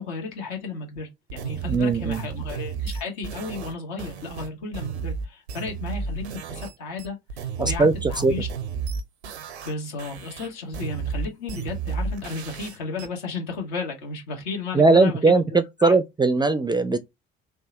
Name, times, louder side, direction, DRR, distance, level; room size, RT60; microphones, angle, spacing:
voice 1, 0.0-8.5 9.6-16.0, left 4 dB, 70° left, 1.5 m, -34 dB
sound 1, 1.3-6.7 7.0-9.7 10.0-13.1, right 6 dB, 85° right, 0.5 m, -32 dB
voice 2, 1.7-2.2 7.6-8.3 14.7-17.0, right 3 dB, 15° right, 0.4 m, -20 dB
3.5 x 2.3 x 3.0 m
hypercardioid pair, 50°, 32 cm